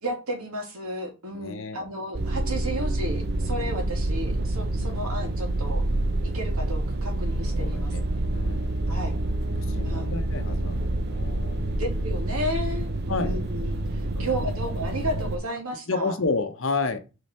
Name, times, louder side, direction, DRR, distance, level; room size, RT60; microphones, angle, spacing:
voice 1, 0.0-5.8 6.3-8.2 8.9-9.1 9.8-10.1 11.8-16.2, equal, 85° right, 2.4 m, -33 dB
voice 2, 1.3-1.8 4.8-5.0 7.6-8.0 8.3-8.8 9.6-11.8 13.1-13.3 14.2-14.5 15.9-17.0, left 3 dB, 65° left, 0.9 m, -31 dB
sound 1, 2.1-15.4, right 1 dB, 50° right, 0.6 m, -27 dB
6.8 x 4.0 x 4.3 m
head